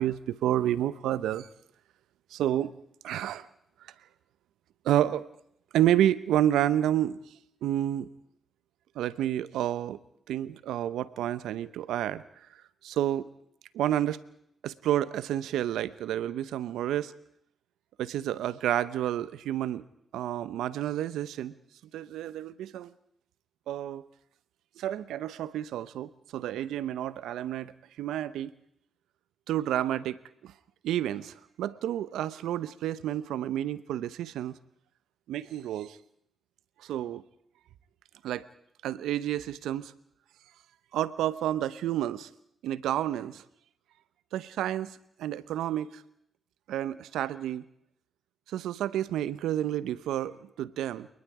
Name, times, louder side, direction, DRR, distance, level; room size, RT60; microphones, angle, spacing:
voice 1, 0.0-1.5 2.3-2.7 3.0-3.5 4.8-5.2 5.7-7.2 7.6-8.1 9.0-10.0 10.3-12.2 12.8-13.3 13.7-14.2 14.6-17.1 18.0-19.8 20.1-21.5 21.9-22.9 23.7-24.0 24.8-27.7 28.0-28.5 29.5-30.2 30.4-30.5 30.8-34.5 35.3-36.0 36.8-37.2 38.2-38.4 38.8-39.9 40.9-42.3 42.6-43.4 44.3-46.0 46.7-47.6 48.5-51.1, right 12 dB, 85° right, 17 dB, 0.8 m, -30 dB
30.0 x 19.5 x 4.9 m, 0.72 s
supercardioid pair, 50°, 0 cm